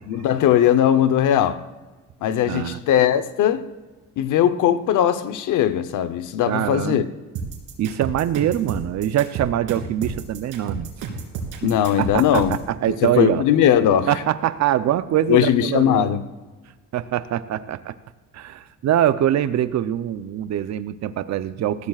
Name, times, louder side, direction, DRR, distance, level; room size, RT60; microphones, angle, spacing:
voice 1, 0.1-1.6 2.2-3.7 4.2-7.0 11.6-12.6 13.0-14.1 15.3-16.2, left 10 dB, 85° left, 0.9 m, -19 dB
voice 2, 2.4-2.8 6.4-7.1 7.8-10.9 11.6-13.4 14.1-16.1 16.9-18.0 18.3-21.9, right 11 dB, 65° right, 0.7 m, -23 dB
sound 1, 7.3-12.7, right 5 dB, 85° right, 3.0 m, -31 dB
19.5 x 15.0 x 2.4 m
cardioid pair, 90°, 30 cm